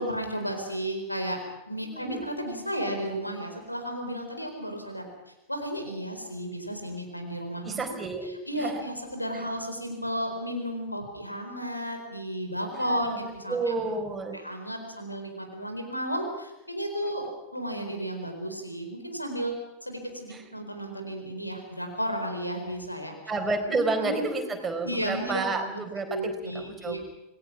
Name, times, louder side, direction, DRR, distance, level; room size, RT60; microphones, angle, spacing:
voice 1, 0.0-1.4 1.7-5.1 5.5-7.8 8.5-13.7 14.3-19.5 19.8-23.1 23.7-24.3 24.8-25.8 26.1-27.0, equal, 85° left, 4 dB, 4.3 m, -33 dB
voice 2, 1.8-2.3 7.6-8.3 8.6-8.7 9.3-9.4 12.7-13.2 13.5-14.4 20.3-20.4 23.3-27.0, right 3 dB, 15° right, 3 dB, 4.4 m, -30 dB
27.5 x 20.0 x 6.1 m, 0.99 s
figure-of-eight pair, 90°, 0 cm